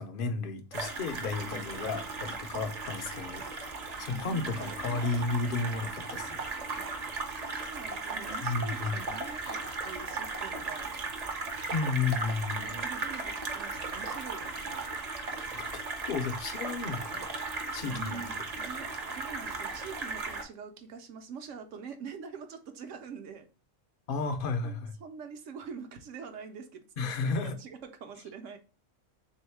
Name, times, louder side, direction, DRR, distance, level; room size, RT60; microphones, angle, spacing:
voice 1, 0.0-3.5 4.0-6.4 8.4-9.1 9.4-9.6 11.7-12.8 15.5-15.7 16.0-17.3 17.7-18.2 24.1-24.9 27.0-27.6, left 4 dB, 55° left, 0.6 m, -33 dB
sound 1, 0.7-20.4, right 3 dB, 40° right, 0.6 m, -37 dB
voice 2, 4.1-5.4 6.8-6.9 7.3-10.9 12.5-14.9 17.8-23.5 24.6-28.6, right 6 dB, 75° right, 1.0 m, -45 dB
3.5 x 2.8 x 4.5 m
omnidirectional pair, 1.3 m